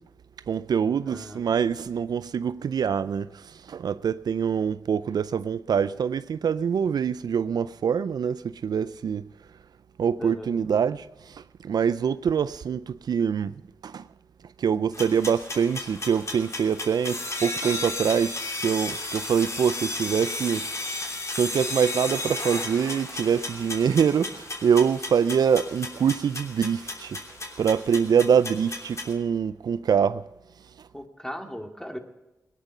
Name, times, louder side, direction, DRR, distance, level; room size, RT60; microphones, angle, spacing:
voice 1, 0.5-9.3 10.0-13.5 13.8-14.1 14.6-20.7 21.4-27.2 27.6-30.2, right 7 dB, 75° right, 0.4 m, -25 dB
voice 2, 1.0-1.5 10.2-10.6 30.9-32.0, equal, 10° left, 2.5 m, -37 dB
sound 1, 14.9-29.1, left 2 dB, 45° left, 3.1 m, -34 dB
18.5 x 11.0 x 5.5 m
cardioid pair, 40°, 7 cm